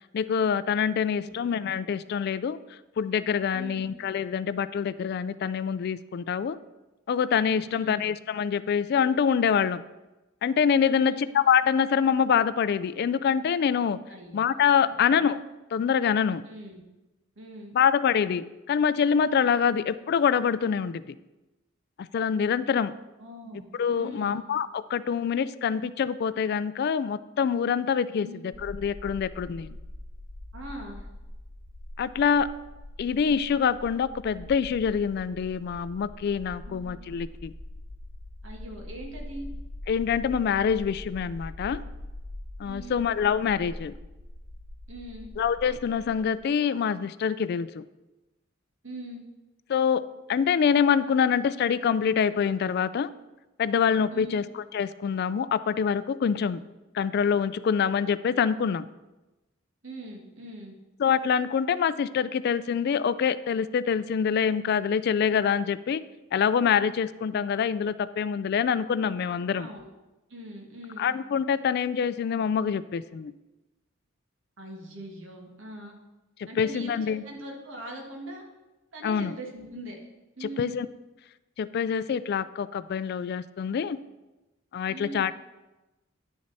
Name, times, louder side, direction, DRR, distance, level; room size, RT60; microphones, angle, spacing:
voice 1, 0.1-2.6 3.0-6.6 7.1-9.8 10.4-14.0 14.3-15.4 15.7-16.4 17.7-21.2 22.1-22.9 23.8-29.8 32.0-32.5 33.0-37.5 39.9-41.8 42.6-43.9 45.4-47.8 49.7-50.0 50.3-53.1 53.6-56.6 56.9-58.9 61.0-66.0 66.3-69.7 71.0-73.3 76.6-77.2 79.0-79.4 80.4-80.9 81.6-84.0 84.7-85.3, left 7 dB, 50° left, 15 dB, 0.3 m, -25 dB
voice 2, 3.5-3.9 7.6-8.0 10.8-11.2 14.1-14.4 14.8-15.2 16.5-16.8 17.3-17.8 19.6-19.8 23.2-23.7 24.0-24.4 28.2-28.4 30.5-31.1 36.6-36.9 38.4-39.5 42.6-43.0 44.9-45.3 48.8-49.2 54.1-54.4 59.8-60.7 69.5-69.9 70.3-71.1 74.6-76.0 76.4-78.5 78.9-80.0 80.4-80.8 84.9-85.3, right 1 dB, 70° right, 1 dB, 1.7 m, -41 dB
sound 1, 28.5-46.4, left 1 dB, 85° left, 0.9 m, -43 dB
10.0 x 6.4 x 4.1 m, 1.0 s
head